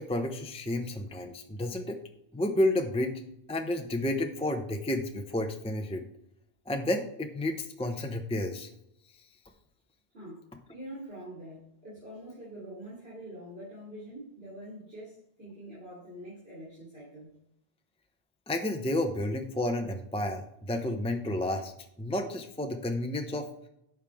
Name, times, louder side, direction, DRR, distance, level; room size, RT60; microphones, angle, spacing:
voice 1, 0.0-2.0 2.3-3.1 3.5-6.0 6.7-8.7 18.5-21.7 22.0-23.5, left 1 dB, 5° left, 4 dB, 0.7 m, -31 dB
voice 2, 10.7-17.4, right 1 dB, 70° right, -8 dB, 3.8 m, -45 dB
12.0 x 7.4 x 3.5 m, 0.80 s
omnidirectional pair, 1.1 m